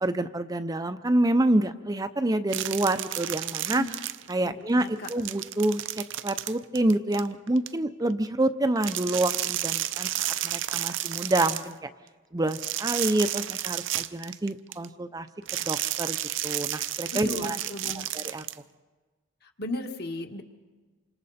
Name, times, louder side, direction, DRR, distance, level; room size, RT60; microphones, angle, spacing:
voice 1, 0.0-3.8 4.3-10.1 10.4-11.9 12.3-15.3 15.5-16.2 16.4-17.6 18.1-18.4, right 1 dB, 20° right, 9 dB, 0.6 m, -27 dB
sound 1, 2.5-4.5 4.8-7.7 8.8-11.7 12.5-14.8 15.5-18.5, right 13 dB, 60° right, 0.6 m, -32 dB
voice 2, 4.4-5.1 17.1-18.1 19.4-20.4, left 2 dB, 50° left, 4 dB, 1.8 m, -36 dB
28.5 x 26.0 x 4.2 m, 1.3 s
head